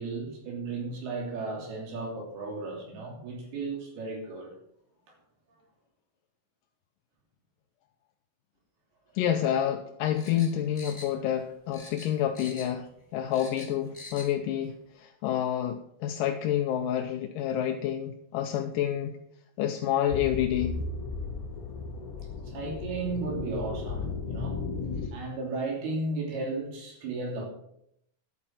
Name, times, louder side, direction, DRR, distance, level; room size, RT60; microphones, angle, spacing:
voice 1, 0.0-4.6 22.4-24.6 25.1-27.5, right 3 dB, 80° right, 0 dB, 4.9 m, -34 dB
voice 2, 9.2-12.9 13.1-19.1 19.6-20.8, left 10 dB, 75° left, 5 dB, 2.1 m, -28 dB
sound 1, 10.1-11.4 11.7-12.8 13.1-14.3 14.6-14.7, left 2 dB, 10° left, 2.8 m, -45 dB
sound 2, 20.1-25.1, left 4 dB, 50° left, 2.0 m, -35 dB
11.5 x 8.7 x 6.0 m, 0.74 s
omnidirectional pair, 4.4 m